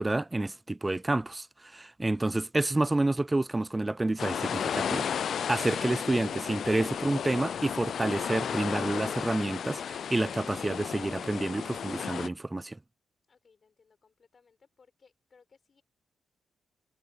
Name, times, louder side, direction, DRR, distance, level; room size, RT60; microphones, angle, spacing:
voice 1, 0.0-12.8, right 2 dB, 15° right, 0.4 m, -29 dB
sound 1, 4.2-12.3, left 8 dB, 60° left, 0.3 m, -33 dB
voice 2, 13.3-15.8, left 5 dB, 40° left, 5.5 m, -63 dB
cardioid pair, 105°, 0 cm